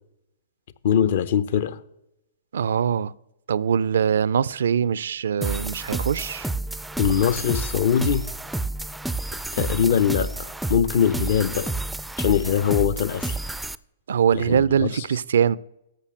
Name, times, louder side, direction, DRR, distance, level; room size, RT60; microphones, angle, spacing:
voice 1, 0.8-1.8 7.0-8.3 9.5-11.7 12.2-13.4 14.3-15.0, left 8 dB, 60° left, 0.8 m, -22 dB
voice 2, 2.5-3.1 3.5-6.5 14.1-15.6, right 8 dB, 70° right, 0.4 m, -22 dB
sound 1, 5.4-13.8, right 2 dB, 5° right, 0.4 m, -30 dB
13.5 x 5.4 x 6.5 m
figure-of-eight pair, 115°, 0 cm